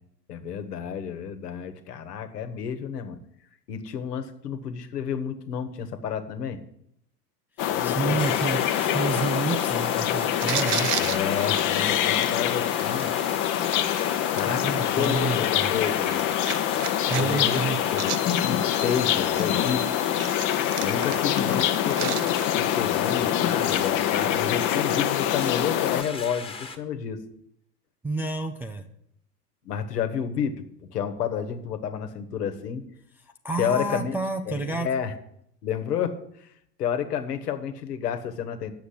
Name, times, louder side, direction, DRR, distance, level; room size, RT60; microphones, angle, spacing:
voice 1, 0.3-3.2 3.7-6.6 7.7-8.2 11.0-13.2 14.3-16.3 16.8-16.9 17.1-19.8 20.8-22.2 22.5-27.2 29.6-32.8 33.6-34.2 34.5-35.1 35.6-36.5 36.8-38.7, left 8 dB, 75° left, 9 dB, 1.5 m, -30 dB
sound 1, 7.6-26.0, left 11 dB, 40° left, 0.9 m, -25 dB
voice 2, 7.8-11.0 14.5-15.7 17.1-17.8 28.0-28.8 33.4-34.9, right 3 dB, 5° right, 1 dB, 0.3 m, -29 dB
sound 2, 8.2-26.8, left 4 dB, 10° left, 1.4 m, -38 dB
sound 3, 10.4-13.1 13.7-14.4 14.9-17.2 17.5-18.9 19.4-22.6 23.2-23.3, right 10 dB, 75° right, 1.0 m, -34 dB
8.9 x 6.9 x 8.4 m, 0.74 s
hypercardioid pair, 90°, 48 cm